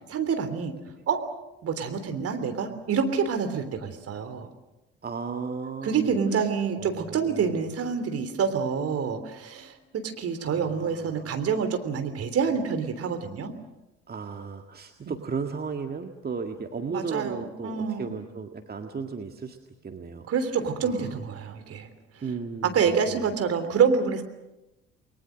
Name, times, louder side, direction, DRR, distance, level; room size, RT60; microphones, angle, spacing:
voice 1, 0.1-0.7 1.1-1.2 1.6-4.5 5.8-13.5 16.9-18.1 20.3-21.9 22.7-24.2, right 6 dB, 50° right, 8 dB, 3.3 m, -27 dB
voice 2, 5.0-7.7 10.4-11.3 14.1-19.6 19.8-20.3 20.8-21.2 22.2-23.3, right 5 dB, 30° right, 5 dB, 1.8 m, -35 dB
29.5 x 22.0 x 6.5 m, 0.95 s
figure-of-eight pair, 50°, 31 cm